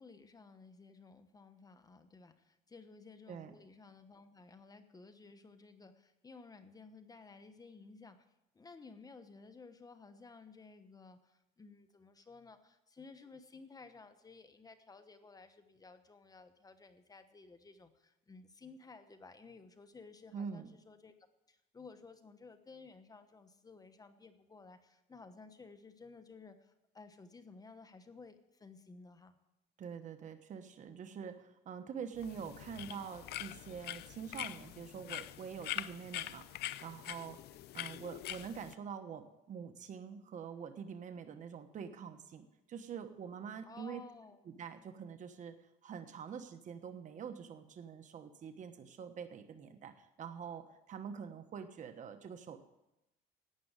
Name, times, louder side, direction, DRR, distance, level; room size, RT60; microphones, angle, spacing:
voice 1, 0.0-8.3 8.5-21.1 21.5-29.4 43.6-44.4, left 4 dB, 20° left, 9 dB, 1.1 m, -55 dB
voice 2, 20.3-20.7 29.8-37.4 37.7-44.0 44.5-45.6 45.8-52.6, right 7 dB, 50° right, 8 dB, 1.2 m, -45 dB
sound 1, 32.2-38.7, left 14 dB, 70° left, 0.5 m, -44 dB
12.0 x 8.6 x 8.1 m, 0.90 s
cardioid pair, 110°, 17 cm